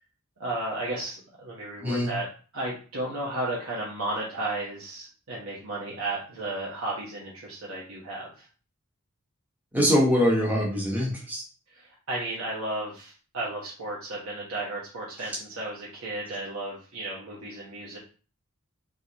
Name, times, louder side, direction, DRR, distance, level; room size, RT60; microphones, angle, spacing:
voice 1, 0.4-2.3 2.5-8.5 11.7-18.0, right 2 dB, 75° right, -5 dB, 1.2 m, -34 dB
voice 2, 9.7-11.4, equal, 10° right, -3 dB, 1.2 m, -23 dB
3.8 x 3.6 x 3.0 m, 0.38 s
head